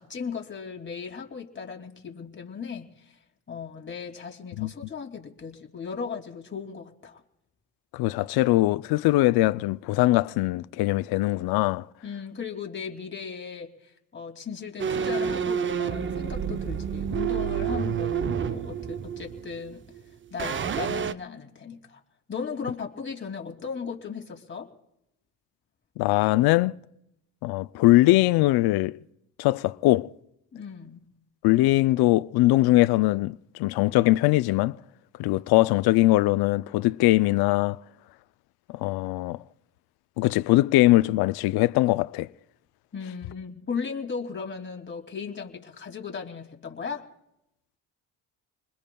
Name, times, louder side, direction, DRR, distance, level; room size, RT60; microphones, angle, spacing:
voice 1, 0.0-3.2 3.5-7.2 12.0-19.8 20.3-22.0 22.3-24.7 30.5-31.0 42.9-47.1, left 6 dB, 25° left, 2.6 m, -36 dB
voice 2, 7.9-11.9 26.0-26.7 27.4-29.0 29.4-30.1 31.4-34.8 35.2-37.8 38.7-39.4 40.2-42.3, left 18 dB, 60° left, 0.5 m, -21 dB
sound 1, 14.8-20.0 20.4-21.1, right 8 dB, 30° right, 0.6 m, -29 dB
28.0 x 21.0 x 2.3 m
supercardioid pair, 80°, 43 cm